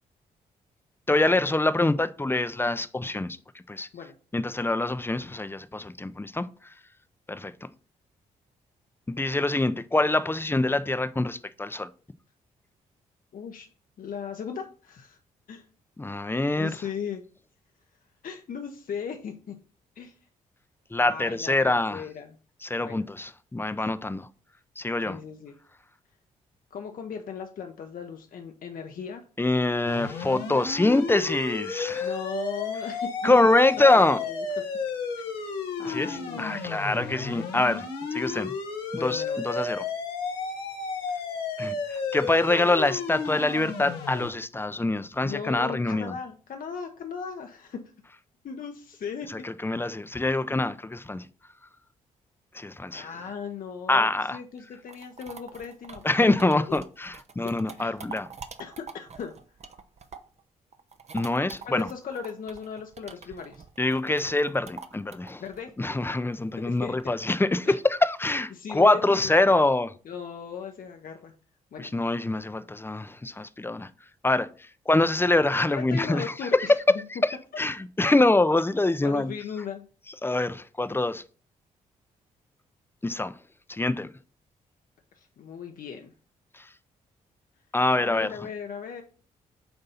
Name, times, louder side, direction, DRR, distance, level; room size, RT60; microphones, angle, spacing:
voice 1, 1.1-3.4 3.7-3.9 4.3-6.5 7.3-7.5 9.1-11.9 16.0-16.8 20.9-22.0 22.6-24.3 24.8-25.2 29.4-32.1 33.2-34.2 35.8-38.5 38.9-39.8 41.6-46.1 49.3-51.3 52.5-53.1 53.9-54.4 56.0-58.3 61.1-61.9 63.8-65.4 65.8-69.9 71.8-73.9 74.2-76.7 77.1-79.3 80.2-81.2 83.0-83.3 83.7-84.1 86.5-86.6 87.7-88.3, left 2 dB, 15° left, 0.6 m, -25 dB
voice 2, 13.3-13.7 14.0-15.2 15.5-15.7 16.6-17.2 18.2-19.6 20.0-20.1 21.0-21.5 21.9-22.3 22.8-23.0 25.0-25.5 26.7-29.2 32.0-33.5 33.8-34.4 35.4-36.6 38.9-39.4 45.2-47.8 48.4-49.5 52.9-56.0 56.5-56.8 57.4-57.5 57.8-57.9 58.6-59.3 61.6-63.6 65.4-65.7 66.7-67.1 67.6-67.8 68.5-69.4 70.0-71.3 71.7-71.9 75.7-77.0 79.0-79.8 85.2-86.1 88.0-89.0, left 6 dB, 60° left, 0.9 m, -37 dB
sound 1, 29.9-44.3, left 4 dB, 85° left, 1.1 m, -33 dB
sound 2, 54.6-60.4 60.7-67.0, right 5 dB, 40° right, 0.8 m, -45 dB
7.9 x 2.6 x 5.6 m
hypercardioid pair, 45°, 17 cm